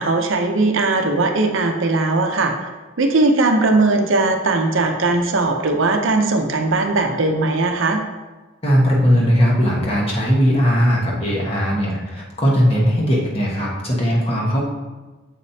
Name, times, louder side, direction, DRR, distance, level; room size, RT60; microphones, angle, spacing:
voice 1, 0.0-2.5 3.0-8.0, right 3 dB, 75° right, 4 dB, 0.7 m, -18 dB
voice 2, 8.6-14.6, equal, 30° left, -4 dB, 1.2 m, -18 dB
7.3 x 5.1 x 2.8 m, 1.2 s
head